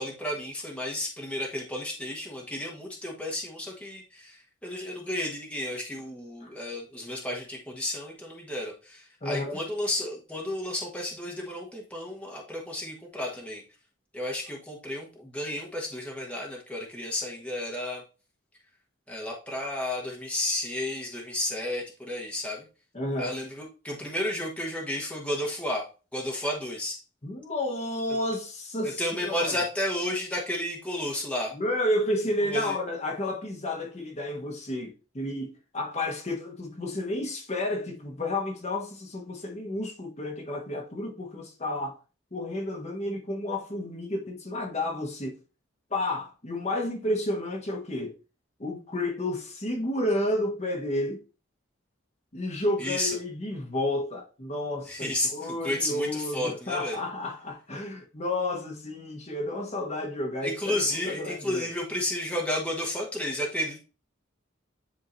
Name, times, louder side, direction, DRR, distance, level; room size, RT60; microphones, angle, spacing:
voice 1, 0.0-13.6 14.1-18.0 19.1-22.6 23.2-27.0 28.8-31.5 32.5-32.8 52.8-53.2 54.9-57.0 60.4-63.8, left 1 dB, 5° left, 1.2 m, -32 dB
voice 2, 9.2-9.6 22.9-23.3 27.2-29.5 31.5-42.0 42.3-45.4 45.9-48.1 48.6-51.2 52.3-61.7, left 1 dB, 35° left, 1.3 m, -31 dB
10.5 x 3.7 x 2.7 m
head